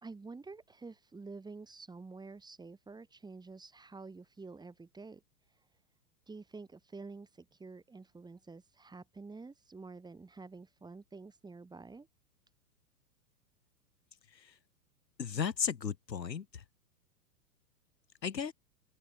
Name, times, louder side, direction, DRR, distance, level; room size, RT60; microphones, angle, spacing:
voice 1, 0.0-5.7 6.3-12.1, right 4 dB, 10° right, 2.6 m, -49 dB
voice 2, 15.2-16.6 18.2-18.5, left 7 dB, 90° left, 1.0 m, -35 dB
open air
figure-of-eight pair, 105°, 49 cm